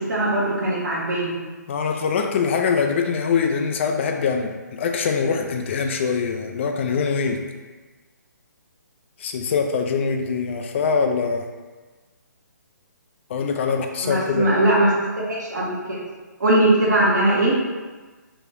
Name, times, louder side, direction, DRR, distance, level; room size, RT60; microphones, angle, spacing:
voice 1, 0.0-1.4 14.0-14.9 15.3-16.0 16.4-17.6, right 1 dB, 70° right, -5 dB, 0.9 m, -20 dB
voice 2, 1.7-7.4 9.2-11.5 13.3-14.5, left 5 dB, 40° left, 4 dB, 0.4 m, -23 dB
3.0 x 2.4 x 3.2 m, 1.3 s
hypercardioid pair, 145°, 10 cm